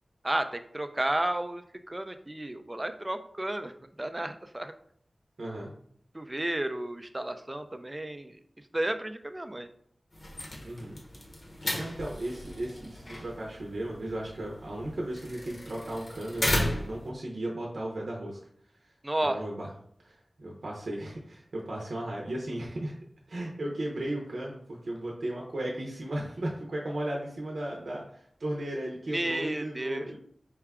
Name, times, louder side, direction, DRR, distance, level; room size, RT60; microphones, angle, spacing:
voice 1, 0.2-4.7 6.1-8.4 8.7-9.7 19.0-19.4 29.1-30.2, right 1 dB, 25° right, 8 dB, 0.4 m, -32 dB
voice 2, 5.4-5.7 10.6-11.0 11.7-18.4 19.2-19.7 20.0-23.0 23.3-30.2, right 1 dB, 80° right, -2 dB, 0.7 m, -35 dB
sound 1, 10.1-17.1, left 1 dB, 55° left, 0.9 m, -35 dB
4.7 x 2.3 x 3.5 m, 0.64 s
wide cardioid pair, 65°, 0 cm